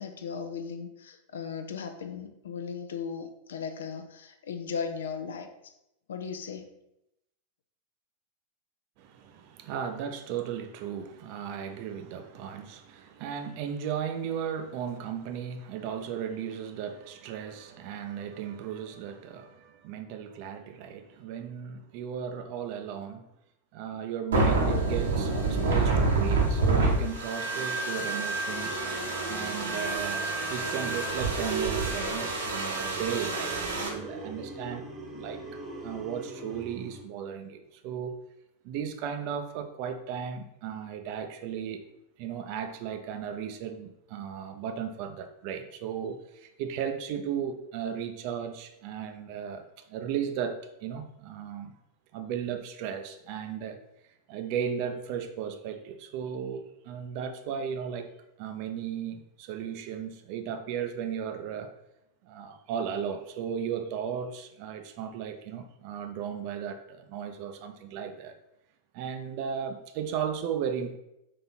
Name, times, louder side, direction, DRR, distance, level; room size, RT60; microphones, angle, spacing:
voice 1, 0.0-5.5 6.1-6.7, left 6 dB, 65° left, 7 dB, 0.4 m, -37 dB
voice 2, 9.0-23.3 23.7-28.8 29.3-34.8 35.1-35.4 35.8-38.2 38.6-41.8 42.2-51.7 52.1-53.8 54.3-58.1 58.4-61.7 62.2-68.3 68.9-71.0, right 8 dB, 45° right, 7 dB, 0.4 m, -35 dB
sound 1, 24.3-33.9, right 3 dB, 65° right, 0.9 m, -28 dB
sound 2, 28.5-37.0, right 4 dB, 20° right, 0.9 m, -40 dB
4.1 x 2.8 x 4.0 m, 0.84 s
figure-of-eight pair, 90°, 0 cm